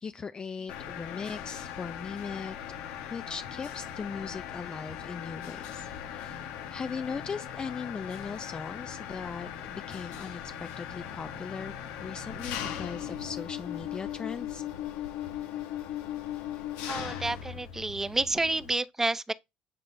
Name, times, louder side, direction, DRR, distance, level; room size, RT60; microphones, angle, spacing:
voice 1, 0.0-2.6 3.1-14.6, left 5 dB, 30° left, 0.5 m, -39 dB
Mechanisms, 0.7-18.7, left 10 dB, 85° left, 1.1 m, -39 dB
voice 2, 16.9-19.3, right 2 dB, 15° right, 0.6 m, -29 dB
7.4 x 3.9 x 3.3 m
supercardioid pair, 95°, 3 cm